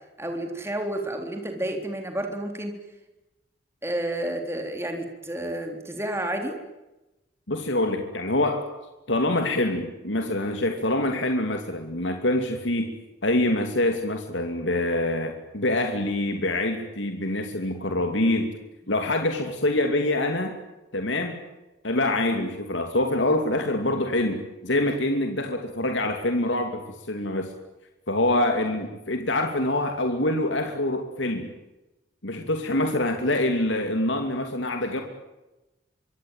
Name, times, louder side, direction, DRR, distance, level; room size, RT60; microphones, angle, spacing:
voice 1, 0.2-2.7 3.8-6.6, right 1 dB, 15° right, 4 dB, 3.7 m, -30 dB
voice 2, 7.5-8.7 9.1-13.0 13.2-18.5 18.9-20.6 20.9-21.4 21.8-27.5 28.1-31.5 32.2-35.0, left 1 dB, 80° left, 4 dB, 2.8 m, -25 dB
25.0 x 25.0 x 9.1 m, 1.0 s
head